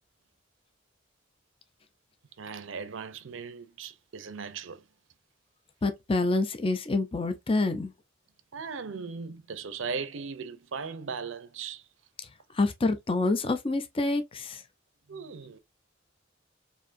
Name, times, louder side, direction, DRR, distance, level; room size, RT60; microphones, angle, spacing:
voice 1, 2.4-4.9 8.5-11.9 15.1-15.6, right 5 dB, 75° right, 0.6 m, -38 dB
voice 2, 5.8-7.9 12.5-14.6, left 3 dB, 30° left, 0.5 m, -27 dB
4.5 x 2.6 x 2.5 m
head